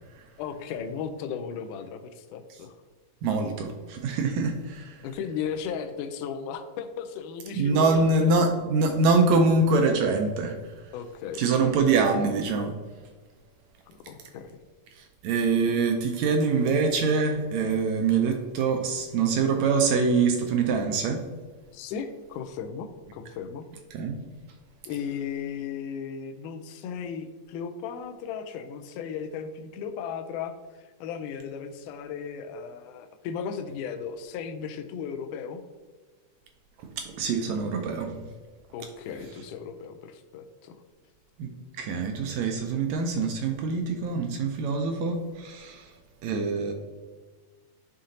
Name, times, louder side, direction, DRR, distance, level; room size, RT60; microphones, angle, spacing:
voice 1, 0.4-2.8 5.0-8.3 10.9-12.0 13.9-14.6 21.7-23.6 24.9-30.5 31.0-35.6 38.7-40.8, left 7 dB, 80° left, 7 dB, 2.1 m, -36 dB
voice 2, 3.2-5.0 7.6-10.9 11.4-12.7 15.0-21.2 23.9-24.2 37.0-38.2 41.4-41.5 41.8-45.9 46.2-46.7, right 4 dB, 85° right, 4 dB, 1.6 m, -24 dB
11.0 x 3.8 x 2.7 m, 1.4 s
omnidirectional pair, 3.7 m